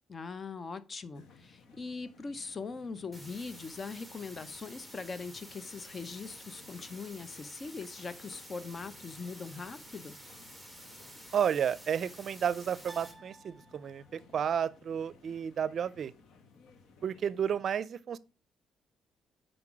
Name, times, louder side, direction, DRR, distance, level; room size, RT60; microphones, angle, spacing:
voice 1, 0.1-10.1, left 4 dB, 40° left, 0.8 m, -41 dB
sound 1, 1.1-17.6, left 4 dB, 75° left, 1.1 m, -59 dB
sound 2, 3.1-13.1, equal, 10° left, 2.4 m, -51 dB
sound 3, 10.3-11.0 12.9-14.3, right 3 dB, 20° right, 1.4 m, -55 dB
voice 2, 11.3-16.1 17.0-18.2, right 8 dB, 55° right, 0.5 m, -32 dB
5.9 x 5.1 x 5.9 m
cardioid pair, 90°, 0 cm